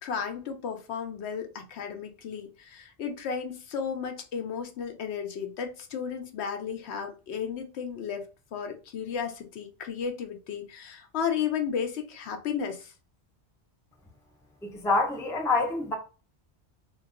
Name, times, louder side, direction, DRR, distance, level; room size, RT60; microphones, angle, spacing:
voice 1, 0.0-12.9, left 7 dB, 75° left, 0.9 m, -34 dB
voice 2, 14.6-15.9, left 3 dB, 5° left, 0.4 m, -26 dB
2.3 x 2.3 x 3.6 m
omnidirectional pair, 1.1 m